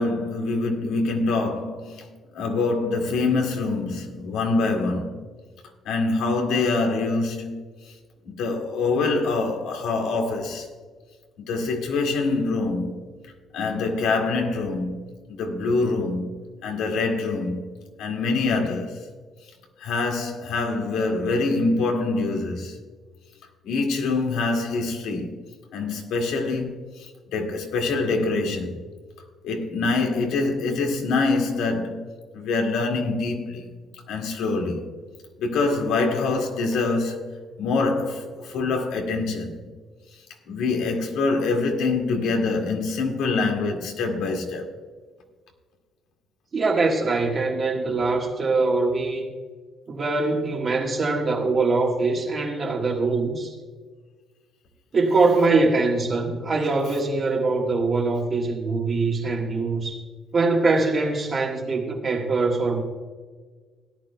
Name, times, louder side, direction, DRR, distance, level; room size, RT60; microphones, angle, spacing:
voice 1, 0.0-5.2 5.9-7.6 8.3-10.7 11.4-13.0 13.5-16.3 16.6-17.6 18.0-19.1 19.8-22.8 23.6-25.4 25.7-28.8 29.4-32.0 32.3-33.7 34.1-34.9 35.4-37.3 37.6-39.7 40.5-44.7, left 3 dB, 85° left, 2.0 m, -25 dB
voice 2, 46.5-49.3 49.9-53.5 54.9-60.0 60.3-62.8, right 3 dB, 35° right, 1.5 m, -23 dB
17.5 x 11.5 x 2.2 m
cardioid pair, 145°, 0 cm